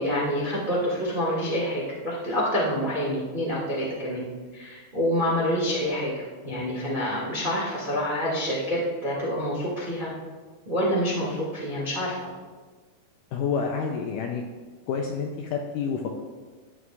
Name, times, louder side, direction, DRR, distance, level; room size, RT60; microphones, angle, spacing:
voice 1, 0.0-4.3 4.5-10.1 10.6-12.2, equal, 40° right, -5 dB, 0.6 m, -27 dB
voice 2, 13.3-14.4 14.9-16.2, left 6 dB, 85° left, 2 dB, 1.9 m, -28 dB
12.5 x 9.5 x 2.4 m, 1.4 s
omnidirectional pair, 4.3 m